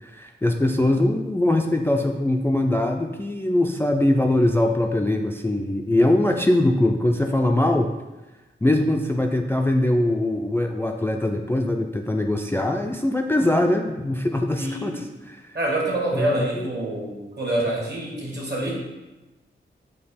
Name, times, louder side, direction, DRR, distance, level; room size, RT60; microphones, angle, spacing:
voice 1, 0.0-7.9 8.6-15.5 16.1-16.7, left 1 dB, 10° left, 3 dB, 0.3 m, -22 dB
voice 2, 14.6-15.0 15.5-18.7, right 1 dB, 55° right, -2 dB, 1.3 m, -26 dB
5.2 x 2.3 x 4.1 m, 1.1 s
cardioid pair, 55°, 21 cm